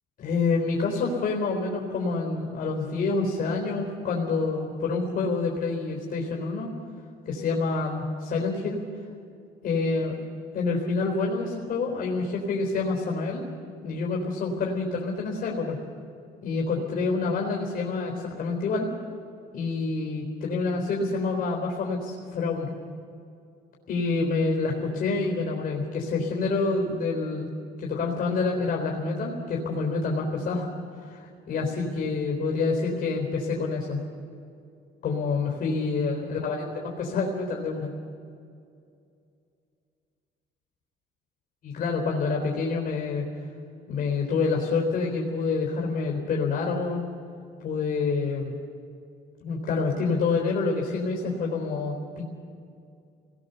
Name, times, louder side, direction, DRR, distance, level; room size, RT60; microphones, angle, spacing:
voice 1, 0.2-6.7 7.3-8.8 9.6-10.2 10.5-13.4 13.8-15.8 16.4-18.9 19.5-22.7 23.9-27.5 27.8-30.7 31.1-34.0 35.0-37.9 41.6-43.2 43.9-47.0 47.6-48.5 49.4-52.2, left 4 dB, 60° left, -1 dB, 3.9 m, -27 dB
27.0 x 19.0 x 7.0 m, 2.4 s
cardioid pair, 110°, 17 cm